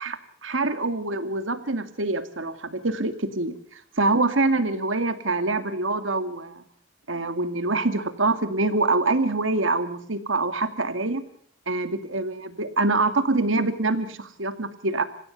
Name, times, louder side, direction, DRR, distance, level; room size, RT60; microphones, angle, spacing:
voice 1, 0.0-6.6 7.1-11.2 11.7-15.0, right 2 dB, 85° right, 10 dB, 2.2 m, -25 dB
27.0 x 16.0 x 7.0 m, 0.62 s
head